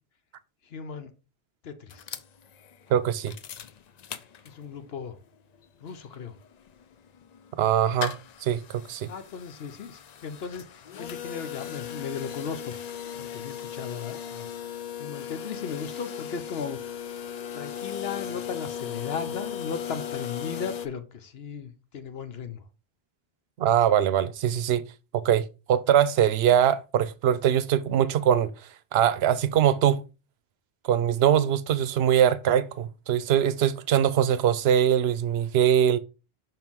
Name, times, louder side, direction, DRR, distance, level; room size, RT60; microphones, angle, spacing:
voice 1, 0.6-1.1 1.6-2.1 4.4-5.2 5.8-6.3 9.1-12.7 13.2-14.5 15.0-17.0 17.5-22.6, left 6 dB, 70° left, 1.0 m, -36 dB
sound 1, 1.9-4.9 5.3-5.4 5.5-20.9, left 9 dB, 55° left, 0.5 m, -38 dB
voice 2, 2.9-3.3 7.6-8.2 8.4-9.1 23.6-24.8 25.1-28.5 28.9-30.0 30.8-36.0, right 9 dB, 75° right, 0.8 m, -22 dB
5.8 x 4.5 x 3.6 m
omnidirectional pair, 1.1 m